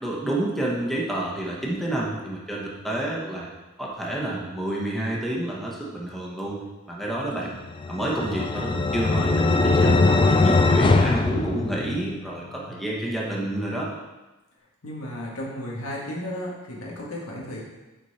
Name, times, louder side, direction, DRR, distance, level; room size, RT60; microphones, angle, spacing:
voice 1, 0.0-3.5 3.8-6.6 6.9-7.6 7.9-13.9, right 1 dB, ahead, -4 dB, 1.2 m, -29 dB
sound 1, 7.7-12.3, left 3 dB, 25° left, 0.3 m, -21 dB
voice 2, 12.7-13.0 14.8-17.6, left 1 dB, 90° left, -3 dB, 1.9 m, -34 dB
8.2 x 4.6 x 4.2 m, 1.1 s
head